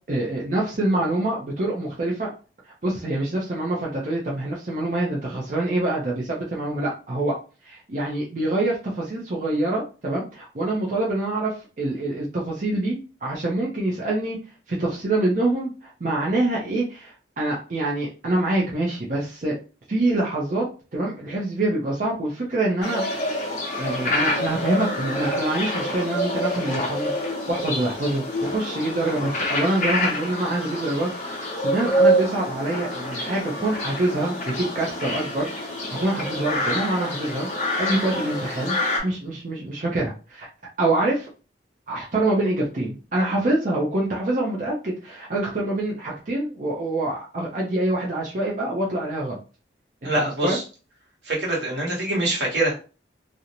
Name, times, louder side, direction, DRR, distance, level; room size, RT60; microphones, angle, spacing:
voice 1, 0.1-2.3 2.7-7.4 7.6-14.4 14.7-19.6 19.9-20.6 20.9-23.4 23.8-27.1 27.5-35.5 35.9-37.5 37.8-38.8 39.0-40.5 40.8-41.3 41.9-49.4 50.2-50.6, right 2 dB, 45° right, -4 dB, 0.5 m, -25 dB
sound 1, 22.8-39.0, equal, 40° left, 0.7 m, -27 dB
voice 2, 50.0-50.6 51.2-52.7, right 1 dB, 75° right, -3 dB, 1.1 m, -24 dB
2.5 x 2.1 x 2.9 m, 0.34 s
head